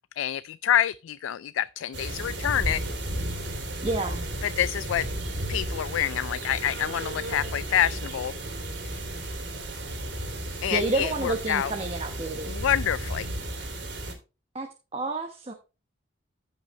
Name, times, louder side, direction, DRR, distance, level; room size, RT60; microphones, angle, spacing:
voice 1, 0.2-2.8 4.4-5.1 5.5-8.3 10.6-11.7 12.5-13.3, left 10 dB, 90° left, 0.3 m, -27 dB
sound 1, 1.9-14.1, right 1 dB, 60° right, 3.0 m, -33 dB
voice 2, 3.8-4.2 10.7-12.6 14.5-15.5, right 2 dB, 30° right, 1.0 m, -30 dB
15.5 x 5.4 x 3.1 m
head